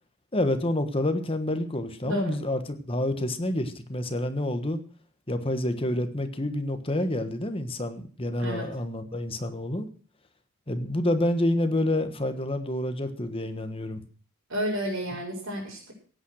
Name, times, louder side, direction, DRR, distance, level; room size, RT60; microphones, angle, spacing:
voice 1, 0.3-4.8 5.3-9.9 10.7-14.0, left 1 dB, 25° left, 9 dB, 1.3 m, -28 dB
voice 2, 2.0-2.4 8.4-8.6 14.5-15.9, equal, 65° right, -7 dB, 5.6 m, -31 dB
16.5 x 8.9 x 6.4 m, 0.44 s
head